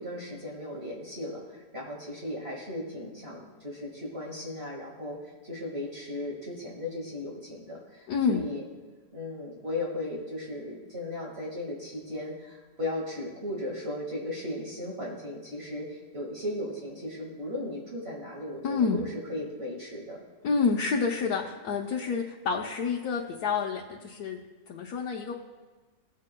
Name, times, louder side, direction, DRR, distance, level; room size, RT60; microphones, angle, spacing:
voice 1, 0.0-5.2 5.4-8.6 9.1-20.2, left 1 dB, 40° right, -4 dB, 2.2 m, -36 dB
voice 2, 8.1-8.4 18.6-19.0 20.4-24.4 24.7-25.3, left 5 dB, 85° left, -2 dB, 1.4 m, -28 dB
21.0 x 8.5 x 2.2 m, 1.3 s
omnidirectional pair, 1.6 m